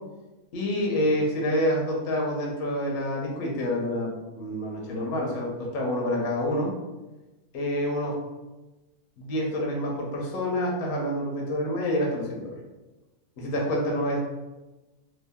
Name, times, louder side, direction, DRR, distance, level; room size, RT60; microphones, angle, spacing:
voice 1, 0.5-6.7 7.5-8.1 9.2-12.5 13.4-14.2, left 1 dB, 65° left, -2 dB, 1.2 m, -27 dB
2.8 x 2.8 x 3.5 m, 1.1 s
omnidirectional pair, 1.6 m